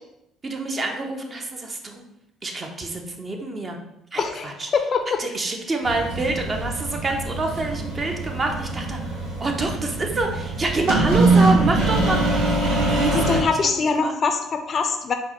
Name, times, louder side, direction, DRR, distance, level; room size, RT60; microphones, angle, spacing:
voice 1, 0.4-2.0 2.4-3.8 4.1-4.7 5.2-12.2 12.9-13.5 13.8-14.1, right 2 dB, 35° right, 3 dB, 0.6 m, -27 dB
voice 2, 4.2-5.0 13.1-15.1, left 5 dB, 45° left, 6 dB, 0.4 m, -23 dB
sound 1, 5.8-13.4, right 2 dB, 90° right, 0.7 m, -23 dB
4.3 x 2.1 x 2.9 m, 0.83 s
supercardioid pair, 85°, 0 cm